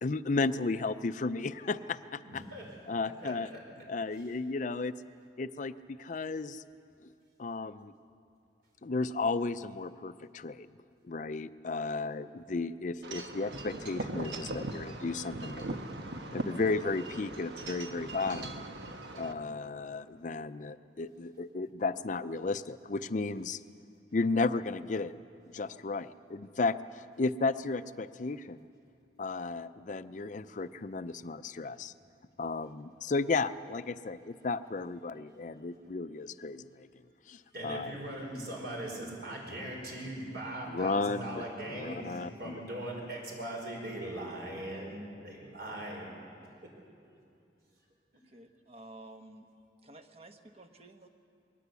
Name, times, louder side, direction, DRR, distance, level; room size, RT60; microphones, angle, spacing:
voice 1, 0.0-2.4 2.9-3.5 3.9-4.9 5.4-6.6 7.4-7.9 8.8-10.7 11.0-15.9 16.3-18.6 19.2-23.6 24.1-25.1 25.5-28.6 29.2-31.9 32.4-36.9 37.3-37.9 40.7-42.6, left 3 dB, 45° left, 12 dB, 0.5 m, -34 dB
voice 2, 2.3-2.8 3.2-3.6 4.1-4.2 37.5-46.1 46.6-46.7, right 1 dB, 60° right, -1 dB, 5.1 m, -40 dB
Wind chime / Wind, 13.0-19.3, right 2 dB, 75° right, 1.3 m, -40 dB
voice 3, 48.3-49.5 49.8-51.1, right 2 dB, 35° right, 6 dB, 1.1 m, -52 dB
21.5 x 18.5 x 8.2 m, 2.6 s
head